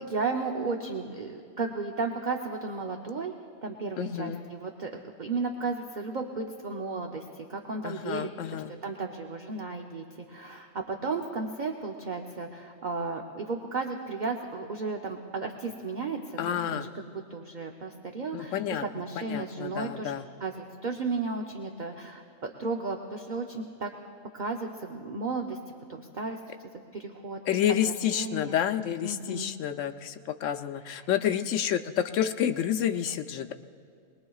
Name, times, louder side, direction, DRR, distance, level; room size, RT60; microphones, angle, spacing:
voice 1, 0.0-3.3 3.6-7.2 7.5-8.3 8.8-20.1 20.4-20.5 20.8-23.9 24.3-25.6 25.9-26.4 26.9-27.4 28.1-28.6 29.0-29.5, right 4 dB, 45° right, 2 dB, 0.8 m, -34 dB
voice 2, 4.0-4.4 7.8-8.7 16.4-16.9 18.3-18.8 19.2-20.2 27.5-30.1 30.4-33.5, left 10 dB, 85° left, 8 dB, 1.0 m, -29 dB
23.5 x 20.0 x 2.4 m, 2.4 s
omnidirectional pair, 1.3 m